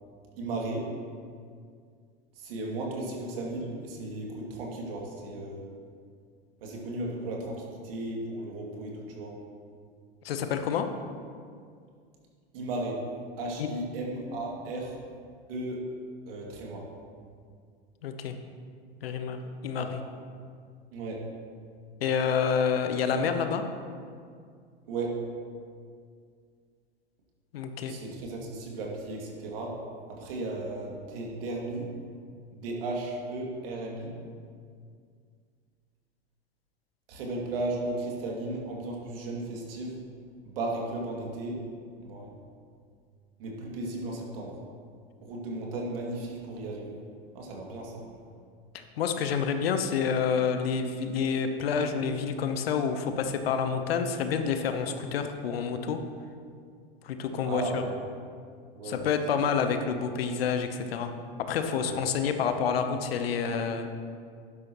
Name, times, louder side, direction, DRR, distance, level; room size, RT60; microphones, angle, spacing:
voice 1, 0.4-0.9 2.4-5.7 6.6-9.3 12.5-13.0 13.4-15.0 15.5-15.9 16.3-16.9 19.8-19.9 20.9-21.2 24.9-25.3 27.9-29.8 30.1-31.9 32.5-34.2 37.1-40.0 40.4-41.6 42.0-42.3 43.4-44.6 45.2-47.0 47.3-48.0 57.4-58.0 58.7-59.1 61.7-62.0, right 2 dB, 70° right, -1 dB, 2.5 m, -35 dB
voice 2, 10.2-10.9 13.6-13.7 18.0-18.3 19.0-20.0 22.0-23.6 27.5-27.9 48.7-56.0 57.0-57.8 58.8-61.1 61.5-63.9, left 6 dB, 75° left, 7 dB, 1.0 m, -28 dB
12.0 x 10.5 x 3.0 m, 2.2 s
hypercardioid pair, 90°, 30 cm